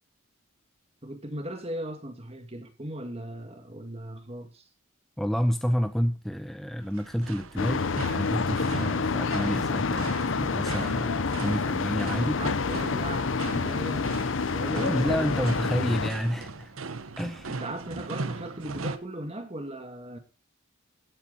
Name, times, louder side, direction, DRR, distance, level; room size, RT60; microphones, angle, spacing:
voice 1, 1.0-4.6 12.1-14.1 14.5-15.5 17.5-20.2, right 1 dB, 30° right, 2.2 m, -38 dB
voice 2, 5.2-12.4 14.6-16.7 17.2-17.6, equal, ahead, 0.6 m, -29 dB
sound 1, 6.8-19.0, right 3 dB, 85° right, 1.1 m, -39 dB
sound 2, 7.6-16.1, left 4 dB, 65° left, 0.7 m, -28 dB
16.0 x 8.9 x 4.2 m
head